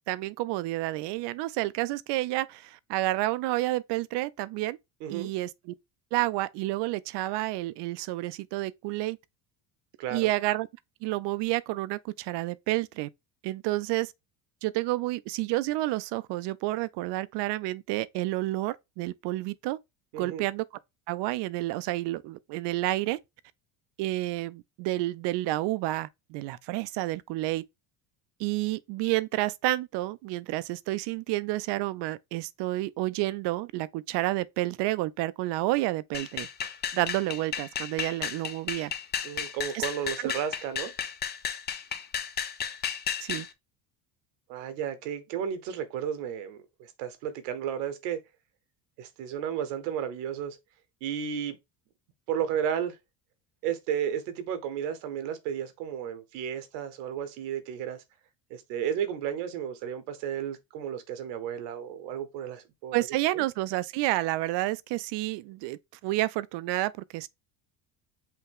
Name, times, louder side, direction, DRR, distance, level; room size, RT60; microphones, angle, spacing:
voice 1, 0.1-4.8 5.1-5.7 6.1-9.2 10.1-10.7 11.0-13.1 13.4-14.1 14.6-19.8 20.2-20.6 21.1-23.2 24.0-27.6 28.4-36.5 36.9-38.9 39.7-39.9 40.2-40.3 43.2-43.5 62.9-67.3, right 17 dB, 65° right, 0.5 m, -30 dB
voice 2, 10.0-10.3 20.1-20.4 39.2-40.9 44.5-48.2 49.0-50.6 51.0-51.6 52.3-53.0 53.6-58.0 58.5-62.9 63.3-63.4, right 9 dB, 90° right, 1.1 m, -33 dB
sound 1, 36.1-43.5, left 8 dB, 25° left, 0.4 m, -33 dB
5.7 x 2.3 x 3.6 m
supercardioid pair, 110°, 46 cm